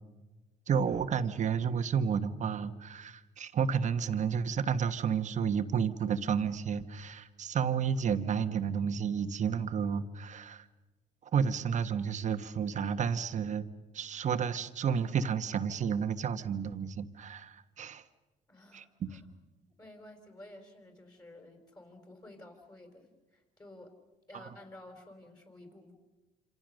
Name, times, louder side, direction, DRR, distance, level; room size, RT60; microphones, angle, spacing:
voice 1, 0.7-10.6 11.3-13.6 13.9-18.0 18.7-19.2 24.3-24.4, right 7 dB, 45° right, 9 dB, 1.3 m, -31 dB
voice 2, 18.5-19.3 19.8-23.9 24.3-25.9, left 1 dB, 20° left, 3 dB, 4.3 m, -52 dB
27.0 x 27.0 x 6.5 m, 1.2 s
cardioid pair, 110°, 17 cm